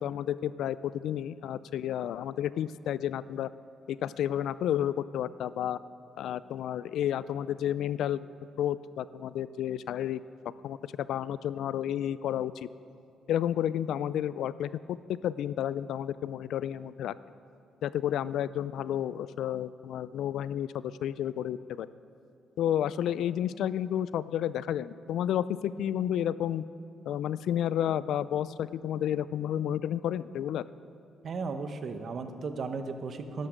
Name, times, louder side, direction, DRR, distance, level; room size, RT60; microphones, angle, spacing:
voice 1, 0.0-3.5 3.9-5.8 6.2-8.3 8.6-10.2 10.6-12.5 13.3-17.1 17.8-21.9 22.6-26.6 27.1-30.6, left 10 dB, 80° left, 17 dB, 0.3 m, -31 dB
voice 2, 31.2-33.5, right 4 dB, 50° right, 8 dB, 1.0 m, -35 dB
12.5 x 12.0 x 5.1 m, 2.5 s
cardioid pair, 90°, 0 cm